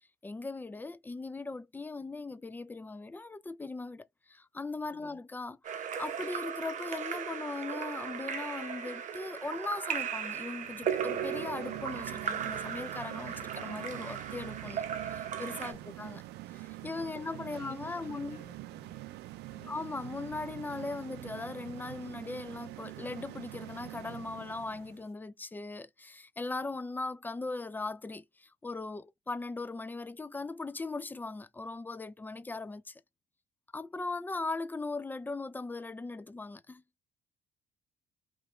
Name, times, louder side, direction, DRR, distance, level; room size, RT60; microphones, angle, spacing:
voice 1, 0.2-16.2 16.5-18.4 19.7-33.0 33.7-36.8, left 3 dB, 10° left, 0.3 m, -39 dB
voice 2, 4.9-5.2 15.7-16.1 17.1-19.0 19.5-19.9, left 7 dB, 60° left, 1.3 m, -56 dB
Splash splatter / Drip / Trickle dribble, 5.6-15.7, right 8 dB, 50° right, 0.7 m, -37 dB
sound 1, 10.5-25.0, right 17 dB, 75° right, 0.4 m, -45 dB
3.1 x 3.0 x 3.7 m
cardioid pair, 110°, 17 cm